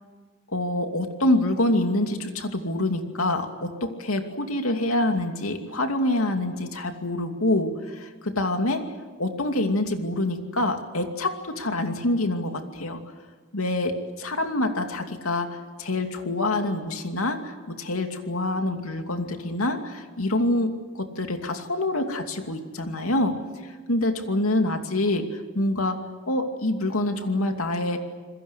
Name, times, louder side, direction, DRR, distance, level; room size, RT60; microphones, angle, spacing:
voice 1, 0.5-8.8 9.2-13.0 13.5-23.3 23.6-26.0 26.3-28.0, left 1 dB, 85° left, 5 dB, 2.6 m, -26 dB
27.5 x 21.5 x 8.2 m, 1.4 s
head